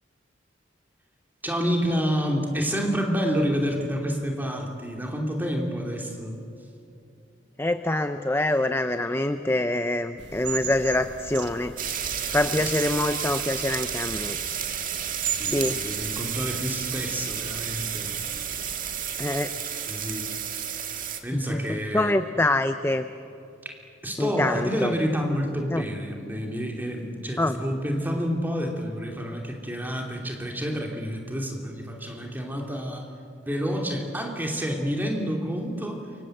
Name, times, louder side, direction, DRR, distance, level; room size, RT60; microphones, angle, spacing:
voice 1, 1.4-6.4 12.6-12.7 15.4-18.4 19.9-20.3 21.2-22.1 23.6-23.7 24.0-33.1 33.4-36.0, equal, 10° right, 1 dB, 2.8 m, -29 dB
voice 2, 7.6-11.7 12.3-14.4 15.4-15.9 19.2-19.5 21.5-21.6 21.9-23.1 24.2-24.9 25.7-25.8 27.4-27.6, left 1 dB, 15° left, 9 dB, 0.6 m, -25 dB
sound 1, 10.2-19.0, right 7 dB, 65° right, 1.6 m, -38 dB
sound 2, 11.8-21.2, right 8 dB, 45° right, 1.8 m, -31 dB
28.0 x 24.5 x 7.9 m, 2.8 s
head